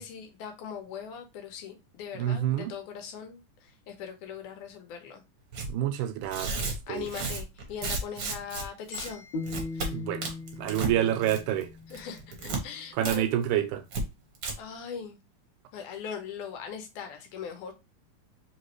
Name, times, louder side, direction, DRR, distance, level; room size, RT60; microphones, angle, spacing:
voice 1, 0.0-5.2 6.9-9.2 9.7-10.0 11.9-13.3 14.6-15.2 15.7-17.7, left 7 dB, 85° left, 2.4 m, -40 dB
voice 2, 2.2-2.7 5.7-7.1 9.9-10.3 10.6-11.7 13.0-13.8, right 11 dB, 90° right, 2.2 m, -28 dB
Tearing, 5.5-5.7 6.2-8.6 8.9-9.1 9.4-9.9 10.2-10.9 11.2-11.6 11.9-12.6 13.0-13.2 13.4-13.5 13.9-14.0 14.3-14.5, right 3 dB, 60° right, 1.2 m, -33 dB
sound 1, 8.9-11.1, left 5 dB, 25° left, 1.1 m, -50 dB
sound 2, 9.3-12.5, left 3 dB, 70° left, 1.7 m, -39 dB
5.0 x 2.9 x 3.0 m
omnidirectional pair, 3.4 m